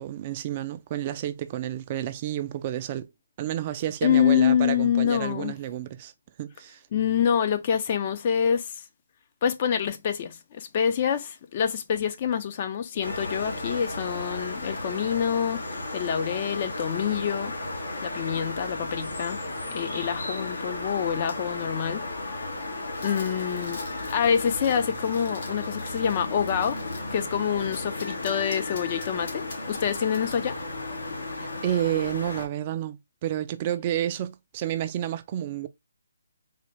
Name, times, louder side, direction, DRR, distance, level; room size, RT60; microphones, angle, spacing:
voice 1, 0.0-3.1 3.4-6.1 6.4-6.8 31.4-35.7, right 11 dB, 35° right, 0.3 m, -30 dB
voice 2, 4.0-5.5 6.9-8.8 9.4-17.5 18.0-19.4 19.7-22.0 23.0-23.8 24.1-26.8 27.1-30.6, left 8 dB, 40° left, 0.5 m, -26 dB
sound 1, 13.0-32.5, left 2 dB, 80° left, 1.1 m, -34 dB
sound 2, 22.9-27.1 27.7-30.6, left 3 dB, 60° left, 1.4 m, -45 dB
3.9 x 2.2 x 3.2 m
figure-of-eight pair, 150°, 0 cm